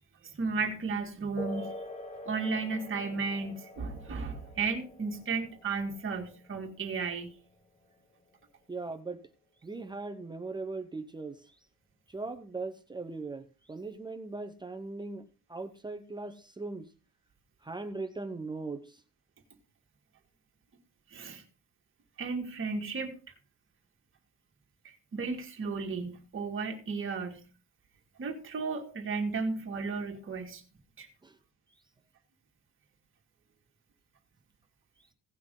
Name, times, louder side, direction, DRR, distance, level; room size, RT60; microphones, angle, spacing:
voice 1, 0.2-1.8 2.3-7.3 21.1-21.4 22.2-23.2 25.1-27.4 28.2-30.6 31.0-31.1, right 4 dB, 30° right, 3 dB, 2.0 m, -34 dB
sound 1, 1.4-9.4, left 1 dB, 15° left, 1.0 m, -46 dB
voice 2, 8.7-9.2 9.6-11.6 12.1-15.2 15.5-16.9 17.6-19.0 21.1-21.3 31.2-31.4, right 3 dB, 10° right, 7 dB, 0.7 m, -39 dB
17.0 x 5.9 x 3.8 m, 0.35 s
cardioid pair, 165°, 41 cm